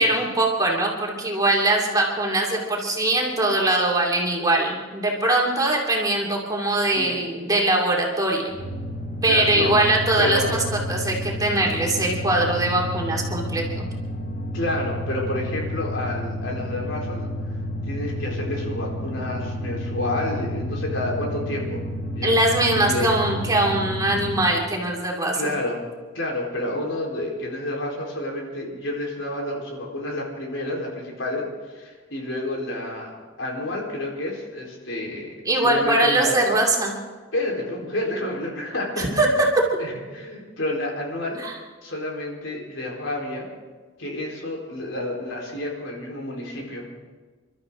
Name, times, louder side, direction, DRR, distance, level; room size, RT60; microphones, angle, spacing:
voice 1, 0.0-8.5 9.2-10.6 10.9-13.9 22.2-25.4 35.4-36.9 39.0-39.3 41.4-41.5, right 2 dB, 20° right, -2 dB, 2.7 m, -22 dB
sound 1, 8.5-24.6, left 1 dB, 45° left, 2.3 m, -30 dB
voice 2, 9.2-9.8 10.2-10.5 14.5-17.3 17.9-21.8 22.1-22.3 22.7-23.1 25.4-25.8 26.1-35.3 35.6-36.3 37.3-39.4 39.8-41.4 41.8-43.5 44.0-46.9, left 1 dB, 75° left, -1 dB, 4.3 m, -29 dB
28.5 x 13.0 x 3.9 m, 1.4 s
head